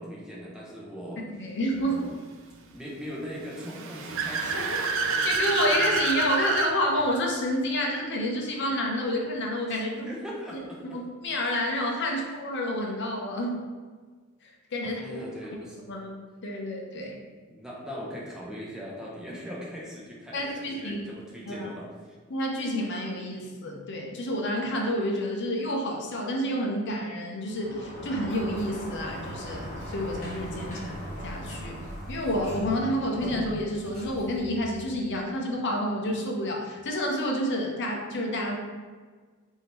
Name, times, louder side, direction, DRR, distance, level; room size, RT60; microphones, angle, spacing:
voice 1, 0.0-1.2 1.8-2.3 2.7-4.6 9.7-11.0 12.1-12.2 14.8-15.8 17.5-22.2 30.6-30.9, equal, 5° right, -5 dB, 0.8 m, -40 dB
voice 2, 1.4-2.1 4.5-10.1 10.5-10.6 10.9-13.6 14.4-15.2 15.9-17.2 20.3-21.0 21.5-21.7 22.3-30.8 31.2-31.8 32.1-38.6, equal, 55° left, 0 dB, 0.6 m, -29 dB
Car / Accelerating revving vroom, 3.5-6.7, right 4 dB, 65° right, 0.5 m, -28 dB
Sliding door, 27.5-35.2, equal, 35° left, 1.1 m, -39 dB
3.6 x 2.7 x 4.3 m, 1.5 s
head